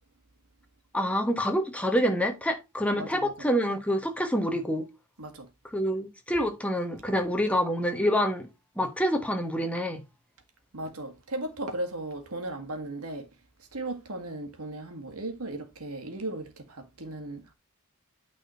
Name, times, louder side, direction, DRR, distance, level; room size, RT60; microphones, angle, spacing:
voice 1, 0.9-4.9 5.7-8.5 8.8-10.0, equal, 5° left, 1.2 m, -27 dB
voice 2, 3.0-3.3 5.2-5.5 10.7-13.3 13.7-17.5, right 2 dB, 85° right, 1.8 m, -36 dB
9.0 x 4.2 x 4.3 m
head